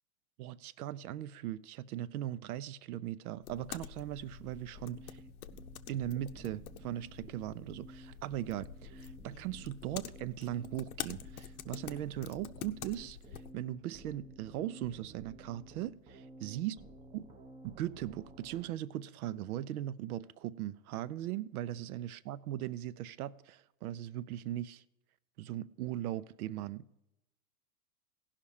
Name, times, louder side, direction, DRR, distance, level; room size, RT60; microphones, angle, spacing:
voice 1, 0.4-5.2 5.9-13.2 13.5-16.8 17.1-17.3 17.6-24.8 25.4-26.9, right 13 dB, 70° right, 0.6 m, -39 dB
sound 1, 3.4-13.5, left 11 dB, 70° left, 0.8 m, -47 dB
sound 2, 4.0-18.7, right 2 dB, 10° right, 0.7 m, -54 dB
16.5 x 5.8 x 4.8 m
supercardioid pair, 140°, 46 cm